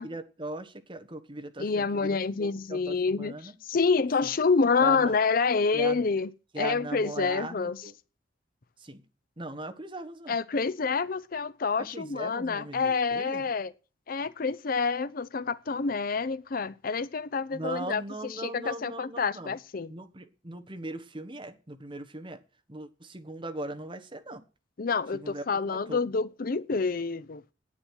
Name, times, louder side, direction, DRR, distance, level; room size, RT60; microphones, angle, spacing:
voice 1, 0.0-3.5 4.2-4.3 4.8-5.1 5.7-6.1 6.5-7.9 8.8-9.0 9.4-10.4 11.8-13.5 17.5-19.6 19.9-22.4 22.7-24.4 25.1-26.0, right 2 dB, 25° right, 1.3 m, -39 dB
voice 2, 1.6-6.3 6.6-7.8 10.3-13.7 14.1-19.9 24.8-27.4, left 4 dB, 50° left, 0.6 m, -28 dB
9.9 x 9.3 x 6.3 m
head